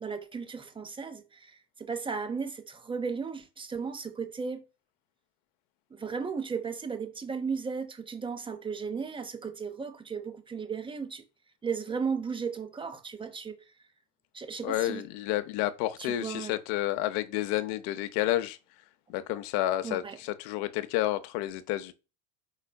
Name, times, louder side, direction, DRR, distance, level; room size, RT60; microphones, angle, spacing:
voice 1, 0.0-4.6 5.9-11.2 11.6-13.6 14.3-15.0 16.0-16.5 19.8-20.2, right 5 dB, 10° right, 0.5 m, -35 dB
voice 2, 14.6-18.6 19.1-21.9, left 15 dB, 55° left, 0.7 m, -30 dB
4.9 x 4.1 x 2.3 m
hypercardioid pair, 95°, 47 cm